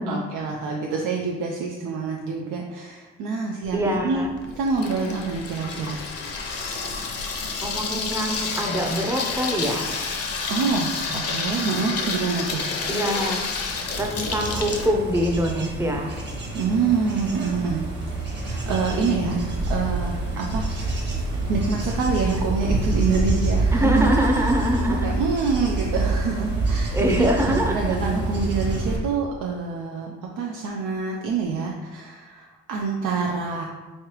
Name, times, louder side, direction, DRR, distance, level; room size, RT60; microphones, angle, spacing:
voice 1, 0.0-6.0 10.5-12.7 16.5-17.8 18.4-21.0 21.5-24.1 24.4-24.5 24.9-33.6, right 4 dB, 85° right, 0 dB, 0.5 m, -26 dB
Water tap faucet / Sink (filling or washing), 3.7-14.9, left 4 dB, 55° left, 0.7 m, -30 dB
voice 2, 3.7-4.3 7.6-9.9 12.9-13.4 14.0-16.1 18.7-19.4 23.7-25.2 26.9-28.0, equal, 10° right, 1 dB, 0.5 m, -24 dB
Bird / Insect / Wind, 13.9-29.0, right 2 dB, 35° right, 0.9 m, -27 dB
3.6 x 3.3 x 2.9 m, 1.2 s
cardioid pair, 90°, 30 cm